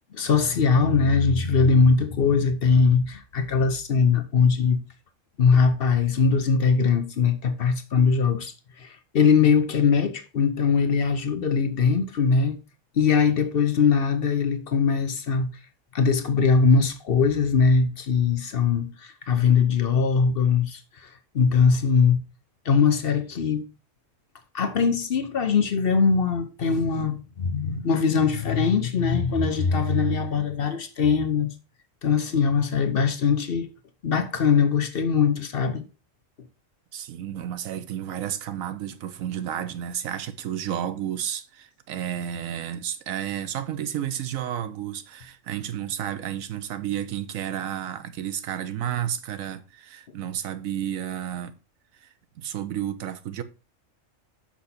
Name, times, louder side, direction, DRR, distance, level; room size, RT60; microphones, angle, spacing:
voice 1, 0.1-4.8 5.4-8.5 8.8-12.6 13.0-15.5 15.9-21.1 21.3-22.2 22.6-23.7 24.5-31.5 32.0-33.7 34.0-35.8, left 5 dB, 50° left, 0.8 m, -21 dB
voice 2, 36.9-51.5 52.0-53.4, right 10 dB, 90° right, 1.2 m, -31 dB
5.9 x 5.7 x 4.1 m
omnidirectional pair, 1.4 m